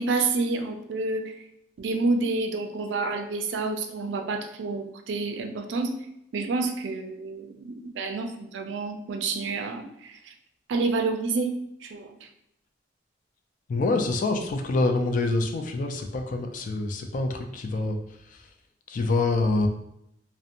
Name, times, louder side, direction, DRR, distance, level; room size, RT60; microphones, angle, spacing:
voice 1, 0.0-1.4 1.8-5.9 6.3-10.3 10.7-11.5 11.8-12.3, right 3 dB, 75° right, 5 dB, 0.4 m, -29 dB
voice 2, 13.7-18.0 18.3-18.4 18.9-19.7, left 2 dB, 45° left, 5 dB, 0.3 m, -26 dB
2.7 x 2.1 x 2.5 m, 0.79 s
head